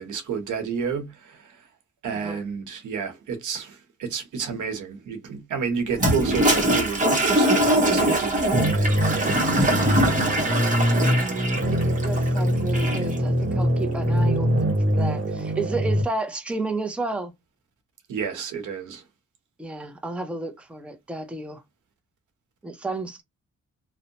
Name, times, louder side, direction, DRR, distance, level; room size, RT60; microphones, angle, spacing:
voice 1, 0.0-1.4 2.0-9.5 18.1-19.0, right 6 dB, 90° right, 0.9 m, -30 dB
Toilet flush, 5.9-13.2, right 1 dB, 25° right, 1.0 m, -22 dB
sound 1, 8.5-16.0, equal, 45° right, 1.0 m, -23 dB
voice 2, 11.0-17.3 19.6-21.6 22.6-23.2, right 2 dB, 5° right, 0.5 m, -32 dB
2.7 x 2.1 x 2.7 m
cardioid pair, 105°, 30 cm